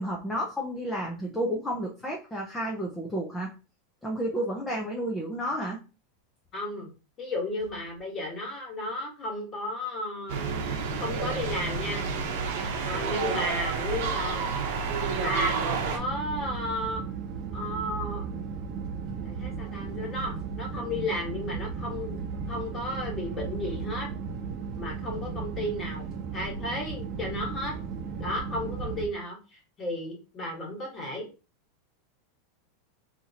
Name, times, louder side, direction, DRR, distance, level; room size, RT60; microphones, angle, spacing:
voice 1, 0.0-3.5 4.0-5.8, equal, 10° left, -2 dB, 0.6 m, -31 dB
voice 2, 6.5-6.9 7.2-10.4 11.0-12.1 12.8-14.5 15.2-17.0 17.5-18.3 19.2-22.2 22.5-24.1 24.8-27.7 28.2-31.3, left 1 dB, 25° left, -1 dB, 1.6 m, -33 dB
sound 1, 10.3-16.0, right 5 dB, 65° right, 0.8 m, -30 dB
sound 2, 15.9-29.1, right 5 dB, 35° right, 0.9 m, -35 dB
3.5 x 2.8 x 2.8 m, 0.32 s
supercardioid pair, 150°, 0 cm